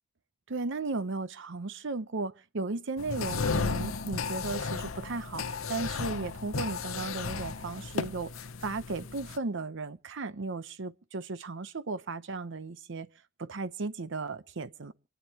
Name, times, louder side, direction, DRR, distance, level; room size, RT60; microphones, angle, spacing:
voice 1, 0.5-8.3 8.6-13.1 13.4-14.9, right 3 dB, 65° right, 0.8 m, -35 dB
sound 1, 3.0-9.4, left 4 dB, 85° left, 0.8 m, -34 dB
29.0 x 10.5 x 2.9 m
head